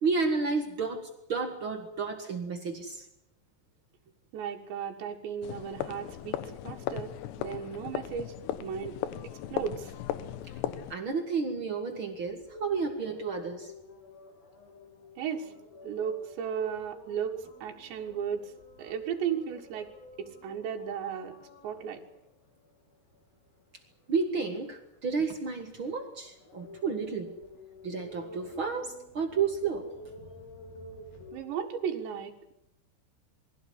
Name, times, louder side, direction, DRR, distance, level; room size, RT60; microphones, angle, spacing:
voice 1, 0.0-3.0 10.9-13.7 24.1-27.3 27.8-29.9, right 4 dB, 50° right, 5 dB, 1.6 m, -31 dB
voice 2, 4.3-7.1 7.4-8.4 8.6-9.0 9.5-9.9 15.2-15.5 15.8-18.5 18.8-19.9 20.2-21.4 21.6-22.0 31.3-32.5, right 8 dB, 85° right, 1 dB, 3.9 m, -35 dB
sound 1, 5.4-11.0, left 11 dB, 80° left, 3.2 m, -36 dB
sound 2, 12.1-31.4, left 1 dB, 60° left, 5.6 m, -51 dB
22.5 x 16.0 x 9.7 m, 0.83 s
omnidirectional pair, 4.9 m